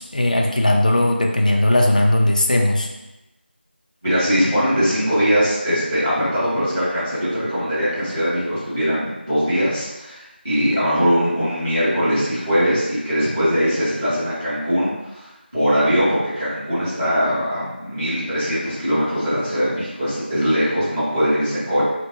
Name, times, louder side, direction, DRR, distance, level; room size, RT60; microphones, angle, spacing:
voice 1, 0.0-2.9, left 1 dB, 45° left, 0 dB, 0.4 m, -18 dB
voice 2, 4.0-21.9, equal, 20° right, -15 dB, 1.1 m, -21 dB
4.6 x 2.1 x 2.7 m, 0.99 s
figure-of-eight pair, 175°, 6 cm